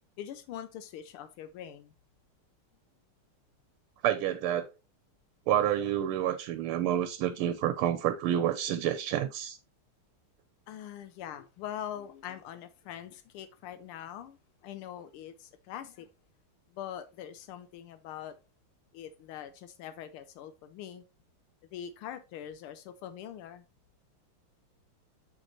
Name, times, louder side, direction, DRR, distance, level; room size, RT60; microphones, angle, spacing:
voice 1, 0.2-1.9 10.7-16.1 16.7-18.3 18.9-21.0 21.7-23.6, left 10 dB, 85° left, 1.5 m, -43 dB
voice 2, 4.0-4.7 5.5-9.6, right 11 dB, 80° right, 1.5 m, -29 dB
6.5 x 6.4 x 2.9 m
omnidirectional pair, 2.3 m